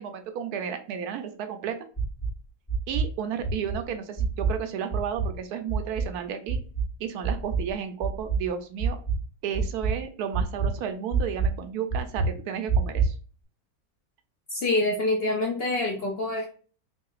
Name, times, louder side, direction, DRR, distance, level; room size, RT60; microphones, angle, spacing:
voice 1, 0.0-1.8 2.9-6.6 7.0-9.0 9.4-13.1, right 8 dB, 85° right, 8 dB, 1.1 m, -32 dB
sound 1, 2.0-2.3 2.7-3.1 3.4-3.8 4.2-4.6 4.9-5.4 5.7-6.1 6.5-6.9 7.2-7.7 8.0-8.4 8.8-9.2 9.5-10.0 10.3-10.7 11.1-11.5 11.9-12.3 12.7-13.1, right 5 dB, 20° left, 1.5 m, -26 dB
voice 2, 14.5-16.5, left 2 dB, 60° left, 0 dB, 0.6 m, -26 dB
3.1 x 2.7 x 2.3 m, 0.40 s
omnidirectional pair, 1.6 m